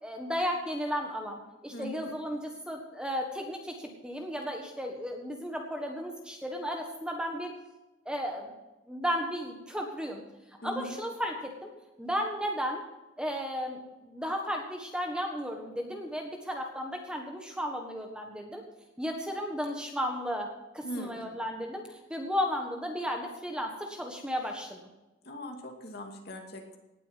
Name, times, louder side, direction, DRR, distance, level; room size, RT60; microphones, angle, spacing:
voice 1, 0.0-7.5 8.0-8.5 8.9-10.2 10.6-11.7 12.0-12.8 13.2-18.6 19.0-24.8, equal, 5° right, 2 dB, 1.5 m, -34 dB
voice 2, 1.7-2.1 10.6-10.9 20.8-21.3 25.2-26.8, equal, 50° left, 2 dB, 2.6 m, -40 dB
18.5 x 8.7 x 5.7 m, 1.0 s
head